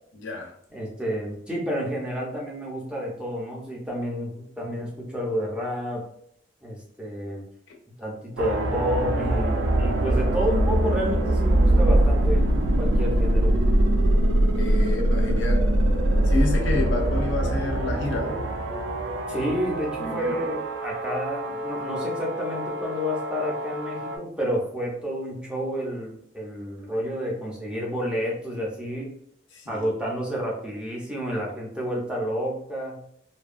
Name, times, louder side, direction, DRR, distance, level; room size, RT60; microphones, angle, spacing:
voice 1, 0.1-0.5 14.5-15.7 16.2-18.4 20.0-20.4 29.5-29.9, left 3 dB, 70° left, 1 dB, 0.6 m, -30 dB
voice 2, 0.7-6.0 6.6-7.4 8.0-12.5 12.8-13.6 19.3-29.1 29.7-33.0, equal, 5° right, -3 dB, 0.5 m, -30 dB
sound 1, 8.4-24.2, right 1 dB, 80° right, 0.4 m, -23 dB
2.7 x 2.2 x 2.4 m, 0.69 s
head